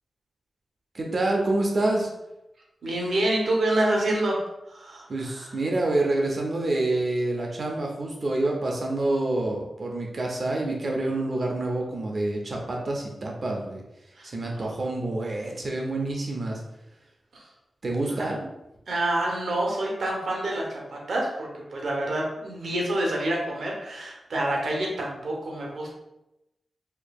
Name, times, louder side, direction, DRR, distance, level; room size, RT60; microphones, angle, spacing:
voice 1, 0.9-2.1 5.1-16.6 16.9-17.1 17.8-18.5, right 2 dB, 45° right, 0 dB, 0.6 m, -27 dB
voice 2, 2.8-4.4 4.7-5.1 14.2-14.3 17.3-17.5 18.2-18.3 18.9-25.9, right 1 dB, 65° right, -2 dB, 0.9 m, -27 dB
4.5 x 2.7 x 2.3 m, 0.91 s
wide cardioid pair, 155°, 0 cm